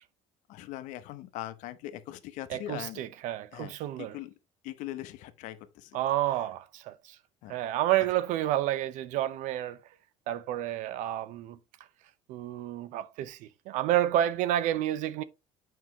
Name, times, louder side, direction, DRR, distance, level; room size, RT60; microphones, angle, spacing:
voice 1, 0.5-3.0 3.5-3.7 4.0-4.3 4.6-6.0 6.3-6.4 7.4-7.6, left 14 dB, 75° left, 0.8 m, -41 dB
voice 2, 2.5-4.2 5.9-6.9 7.5-9.8 10.3-11.6 12.3-15.2, right 13 dB, 75° right, 0.6 m, -30 dB
7.6 x 5.5 x 2.9 m
supercardioid pair, 95°, 13 cm